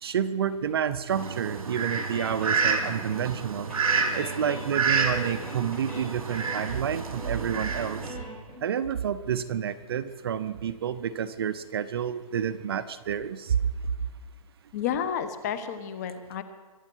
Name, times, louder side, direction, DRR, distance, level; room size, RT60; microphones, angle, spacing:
voice 1, 0.0-3.7 4.1-8.0 8.6-13.6, right 8 dB, 40° right, 13 dB, 0.7 m, -29 dB
Fowl, 1.1-8.1, right 5 dB, 70° right, 2.9 m, -29 dB
sound 1, 1.9-3.4 3.7-8.6, left 1 dB, 10° left, 5.0 m, -41 dB
voice 2, 14.7-16.4, left 8 dB, 30° left, 10 dB, 1.2 m, -31 dB
24.0 x 8.2 x 6.3 m, 1.3 s
hypercardioid pair, 165°, 19 cm